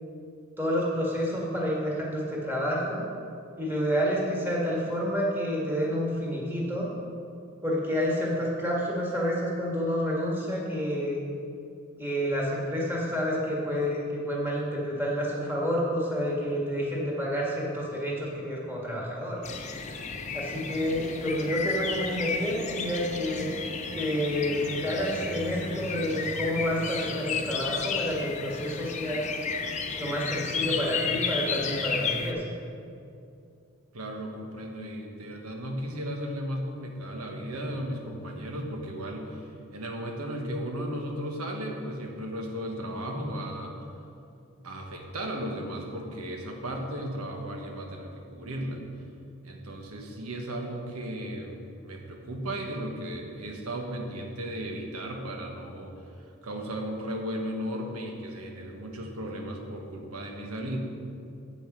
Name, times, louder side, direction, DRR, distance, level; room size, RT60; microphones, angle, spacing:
voice 1, 0.6-3.1 3.6-6.9 7.6-11.2 12.0-19.4 20.3-23.4 23.9-29.3 30.0-32.4, equal, 10° right, -4 dB, 1.7 m, -29 dB
sound 1, 19.4-32.3, left 5 dB, 30° left, 0.6 m, -33 dB
voice 2, 33.9-39.4 39.7-43.7 44.6-48.8 49.4-55.9 56.4-60.8, equal, 85° right, 2 dB, 1.3 m, -35 dB
8.1 x 7.1 x 6.0 m, 2.6 s
head